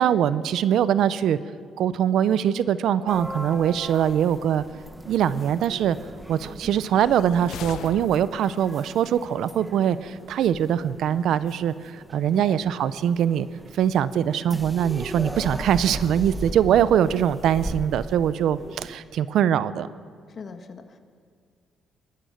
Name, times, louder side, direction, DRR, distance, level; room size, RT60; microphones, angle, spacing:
voice 1, 0.0-1.4 1.8-4.6 5.1-6.0 6.3-13.5 13.7-19.9, right 9 dB, 75° right, 15 dB, 0.6 m, -22 dB
sound 1, 3.1-19.0, right 1 dB, 10° right, 1.3 m, -39 dB
sound 2, 6.9-8.7, left 10 dB, 80° left, 0.7 m, -39 dB
voice 2, 12.3-12.6 20.3-21.0, left 5 dB, 50° left, 7 dB, 1.8 m, -40 dB
21.0 x 19.0 x 6.6 m, 2.1 s
cardioid pair, 90°, 0 cm